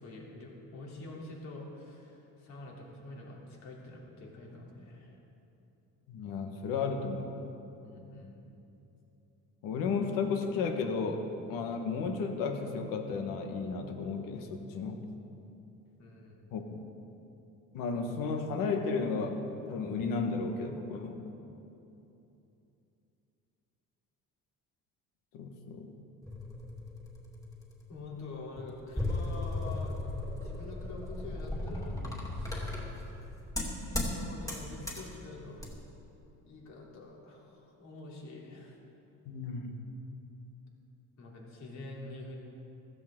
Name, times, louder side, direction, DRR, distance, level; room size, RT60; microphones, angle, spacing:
voice 1, 0.0-5.2 7.8-8.3 16.0-16.4 27.9-32.8 33.9-35.6 36.4-38.8 41.2-42.4, left 2 dB, 55° left, -3 dB, 3.3 m, -46 dB
voice 2, 6.1-7.4 9.6-11.2 11.5-15.0 16.5-16.8 17.7-19.4 19.7-21.2 25.3-25.9 39.2-39.8, left 4 dB, 80° left, 5 dB, 1.5 m, -33 dB
sound 1, 26.2-27.8 28.6-34.2 34.5-35.1 35.6-35.7, left 2 dB, 10° left, 2.6 m, -36 dB
15.5 x 14.0 x 3.8 m, 2.9 s
cardioid pair, 115°, 33 cm